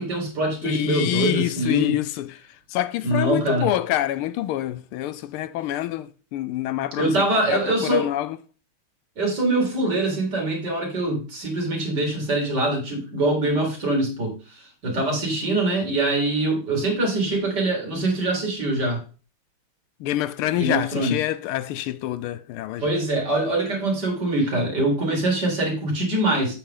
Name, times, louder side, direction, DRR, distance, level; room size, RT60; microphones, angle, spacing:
voice 1, 0.0-2.0 3.0-3.7 7.0-8.1 9.2-19.0 20.5-21.2 22.8-26.5, right 2 dB, 50° right, 3.4 m, -24 dB
voice 2, 0.6-2.4 2.7-8.4 20.0-22.9, left 13 dB, 80° left, 1.4 m, -26 dB
8.3 x 7.0 x 3.8 m
omnidirectional pair, 2.4 m